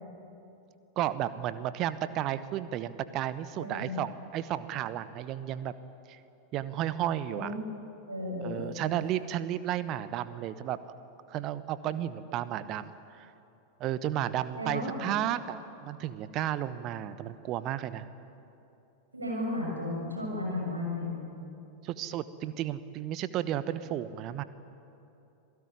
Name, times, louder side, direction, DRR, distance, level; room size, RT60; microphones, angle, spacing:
voice 1, 1.0-5.7 6.1-6.2 6.5-7.5 8.4-10.8 11.3-13.3 13.8-18.1 21.8-24.4, right 12 dB, 35° right, 14 dB, 1.1 m, -33 dB
voice 2, 3.6-4.0 7.3-7.6 8.1-8.7 14.5-15.1 19.1-21.2, left 2 dB, 80° right, -1 dB, 6.8 m, -34 dB
26.5 x 18.0 x 9.8 m, 2.8 s
figure-of-eight pair, 90°, 0 cm